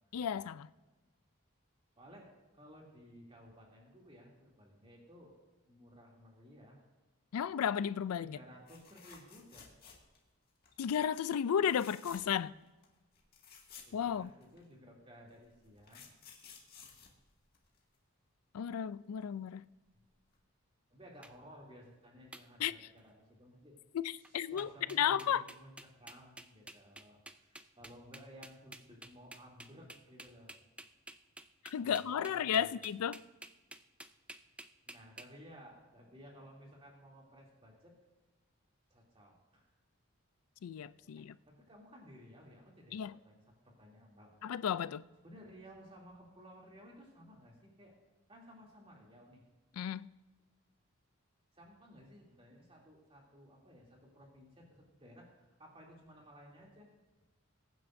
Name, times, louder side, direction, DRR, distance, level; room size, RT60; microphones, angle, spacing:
voice 1, 0.1-0.7 7.3-8.4 10.8-12.5 13.9-14.3 18.5-19.7 22.6-22.9 23.9-25.4 31.6-33.2 40.6-41.4 42.9-43.2 44.4-45.0 49.7-50.1, left 8 dB, 90° left, 0.4 m, -34 dB
voice 2, 2.0-2.3 2.5-5.3 5.6-6.8 8.2-9.9 13.9-16.1 20.9-23.8 24.3-30.6 31.8-32.7 34.8-38.0 38.9-39.7 41.1-43.4 43.6-44.3 45.2-47.9 48.3-49.4 51.5-56.9, equal, 25° right, 2.8 m, -56 dB
sound 1, 8.7-10.3 10.6-11.0 11.6-12.5 12.8-12.9 13.1-14.6 15.4-18.0 19.9-20.0 20.3-20.4, left 7 dB, 45° left, 1.9 m, -56 dB
sound 2, 21.2-21.3 22.3-22.4 23.0-23.3 24.2-24.3 24.6-35.2, right 2 dB, 5° right, 0.3 m, -51 dB
22.0 x 9.2 x 2.6 m
head